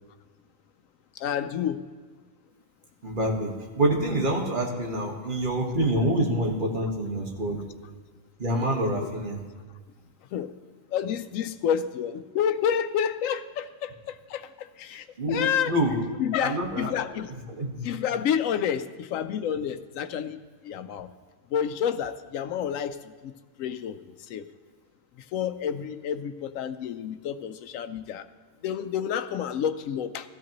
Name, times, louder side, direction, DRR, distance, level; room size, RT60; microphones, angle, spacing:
voice 1, 1.2-1.8 9.0-9.1 10.3-10.5 10.9-15.7 16.2-17.3 17.8-21.1 21.5-23.3 23.6-24.0 24.3-24.4 25.3-28.3 28.6-30.3, left 8 dB, 85° left, 11 dB, 1.0 m, -29 dB
voice 2, 3.0-7.6 8.4-9.4 15.2-16.0 16.4-17.0 17.5-17.8, right 1 dB, 40° right, 0 dB, 1.6 m, -26 dB
15.5 x 13.5 x 3.0 m, 1.4 s
omnidirectional pair, 1.3 m